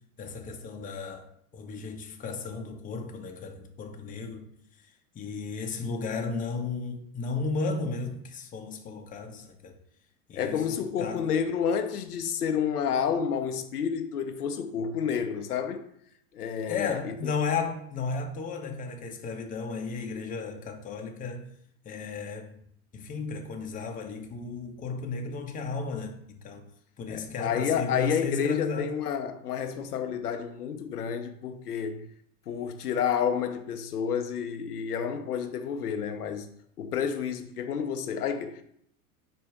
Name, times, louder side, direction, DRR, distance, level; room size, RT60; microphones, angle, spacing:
voice 1, 0.2-1.3 1.5-4.5 5.1-9.8 10.3-11.3 16.7-21.5 21.8-22.5 22.9-26.6 27.0-28.9, left 4 dB, 20° left, 0.6 m, -34 dB
voice 2, 10.3-15.8 16.3-17.3 27.1-32.0 32.5-36.5 36.8-38.6, left 7 dB, 90° left, 0.6 m, -30 dB
4.4 x 2.6 x 4.5 m
hypercardioid pair, 90°, 45 cm